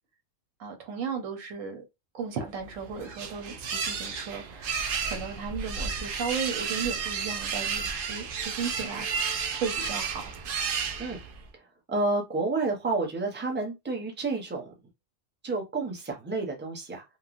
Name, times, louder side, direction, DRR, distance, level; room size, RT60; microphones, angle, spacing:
voice 1, 0.6-1.8 2.1-10.2, right 5 dB, 90° right, 1.1 m, -35 dB
sound 1, 2.6-11.5, right 6 dB, 65° right, 0.5 m, -32 dB
voice 2, 11.5-14.7 15.4-17.0, right 3 dB, 10° right, 0.5 m, -30 dB
3.1 x 2.2 x 2.4 m
omnidirectional pair, 1.3 m